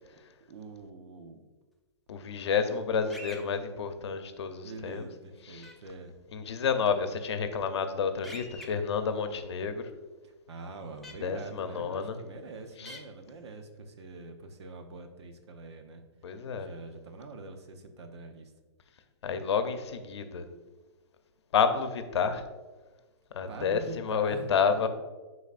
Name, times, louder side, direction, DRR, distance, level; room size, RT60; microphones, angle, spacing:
voice 1, 0.5-1.4 4.6-6.4 10.2-16.0 16.5-18.5 23.5-24.6, right 3 dB, 70° right, 6 dB, 0.9 m, -45 dB
voice 2, 2.1-5.1 5.5-5.7 6.3-9.8 11.2-12.2 12.8-13.0 16.2-16.7 19.2-20.5 21.5-22.4 23.3-24.9, left 6 dB, 75° left, 8 dB, 0.7 m, -30 dB
sound 1, 3.1-3.4 5.6-5.7 8.2-8.7 11.0-11.1 12.9-13.0, left 1 dB, ahead, 0.4 m, -43 dB
10.5 x 4.0 x 2.5 m, 1.3 s
hypercardioid pair, 150°, 14 cm